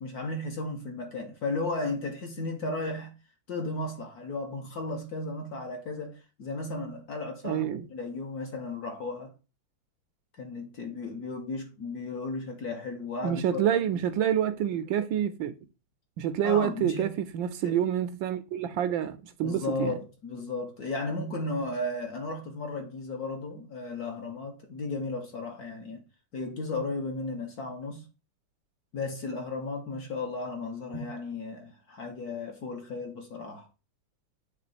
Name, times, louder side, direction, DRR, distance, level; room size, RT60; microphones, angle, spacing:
voice 1, 0.0-3.1 3.5-9.3 10.4-13.6 16.4-17.1 17.6-17.8 19.4-26.0 26.3-28.1 28.9-33.7, left 2 dB, 55° left, 1.3 m, -35 dB
voice 2, 7.4-7.9 13.2-15.5 16.2-19.9 31.0-31.1, right 9 dB, 75° right, 1.2 m, -28 dB
7.6 x 3.4 x 4.1 m
omnidirectional pair, 2.3 m